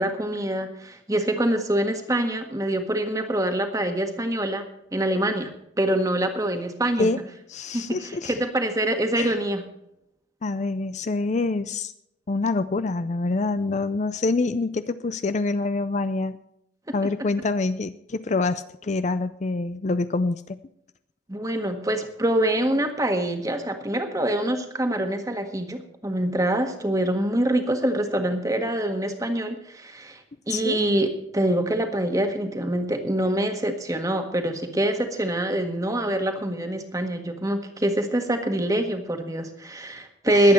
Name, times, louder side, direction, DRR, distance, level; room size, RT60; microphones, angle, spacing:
voice 1, 0.0-4.6 4.9-5.5 5.8-7.1 7.7-9.6 16.9-17.0 21.3-30.2 30.5-40.5, right 1 dB, 20° right, 5 dB, 1.6 m, -25 dB
voice 2, 7.5-8.4 9.2-9.3 10.4-11.9 12.3-16.4 16.9-20.6 30.5-30.8 40.3-40.5, left 3 dB, 40° left, 12 dB, 0.5 m, -26 dB
21.0 x 8.5 x 4.3 m, 0.77 s
head